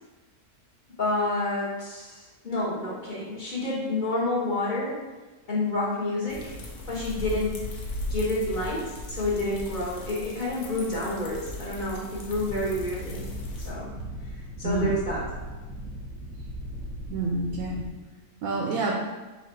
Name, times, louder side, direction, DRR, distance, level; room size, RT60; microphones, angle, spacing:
voice 1, 1.0-5.0 5.5-6.5 6.9-7.6 8.1-13.2 13.6-13.9 14.6-15.2, left 2 dB, 40° left, -6 dB, 0.9 m, -29 dB
sound 1, 6.3-13.7, left 1 dB, 80° left, 1.2 m, -37 dB
sound 2, 12.3-17.9, equal, 20° left, 1.2 m, -38 dB
voice 2, 14.6-15.0 17.1-17.8 18.4-19.0, right 2 dB, 75° right, -2 dB, 1.0 m, -28 dB
4.1 x 2.3 x 4.5 m, 1.2 s
omnidirectional pair, 1.6 m